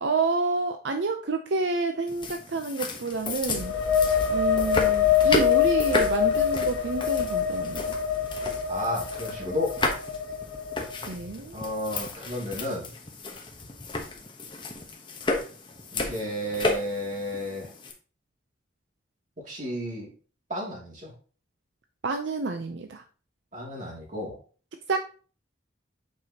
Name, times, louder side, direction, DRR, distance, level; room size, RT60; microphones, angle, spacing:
voice 1, 0.0-3.7 4.3-7.9 11.1-11.6 22.0-23.0 24.9-25.0, right 3 dB, 75° right, 6 dB, 0.6 m, -29 dB
sound 1, 2.1-17.9, left 2 dB, 25° left, 0.9 m, -33 dB
sound 2, 3.4-11.0, left 8 dB, 85° left, 1.4 m, -25 dB
voice 2, 8.7-9.7 11.5-12.9 15.9-17.7 19.4-20.1 20.5-21.1 23.5-24.4, equal, 40° right, -3 dB, 2.4 m, -32 dB
8.4 x 4.8 x 2.8 m, 0.39 s
head